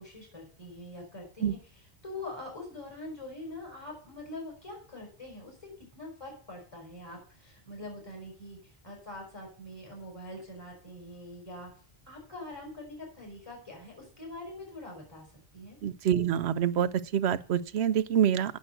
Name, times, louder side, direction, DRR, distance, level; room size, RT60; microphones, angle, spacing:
voice 1, 0.0-11.7 12.1-15.3 15.5-15.8, left 2 dB, 25° left, -1 dB, 5.3 m, -44 dB
voice 2, 15.8-18.6, right 9 dB, 80° right, 14 dB, 0.9 m, -26 dB
9.2 x 7.0 x 7.7 m, 0.42 s
omnidirectional pair, 1.1 m